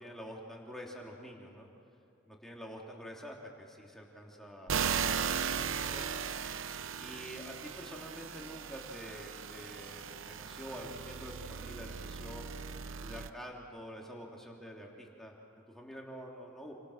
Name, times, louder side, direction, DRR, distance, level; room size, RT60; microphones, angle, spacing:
voice 1, 0.0-1.7 2.2-6.2 7.0-12.5 12.8-16.7, equal, ahead, -2 dB, 3.2 m, -47 dB
sound 1, 4.7-13.3, right 7 dB, 85° right, 0.8 m, -37 dB
29.0 x 27.0 x 6.6 m, 2.6 s
head